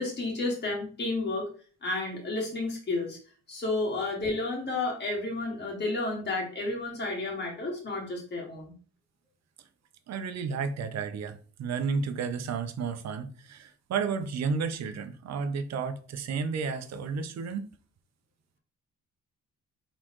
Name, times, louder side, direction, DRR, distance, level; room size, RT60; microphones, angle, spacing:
voice 1, 0.0-1.5 1.8-3.2 3.5-8.7, left 2 dB, 35° left, 2.0 m, -31 dB
voice 2, 10.1-17.7, right 5 dB, 60° right, 0.7 m, -32 dB
4.1 x 3.7 x 3.0 m
cardioid pair, 90°, 30 cm